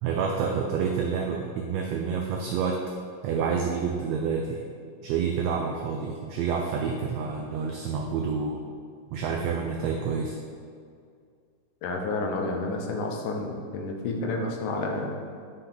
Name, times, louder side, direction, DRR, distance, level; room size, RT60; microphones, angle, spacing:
voice 1, 0.0-2.8 3.2-4.6 5.0-8.6 9.1-10.4, right 6 dB, 85° right, 1 dB, 1.4 m, -28 dB
voice 2, 11.8-15.1, left 2 dB, 90° left, 2 dB, 2.4 m, -30 dB
6.7 x 5.7 x 3.9 m, 2.2 s
omnidirectional pair, 3.6 m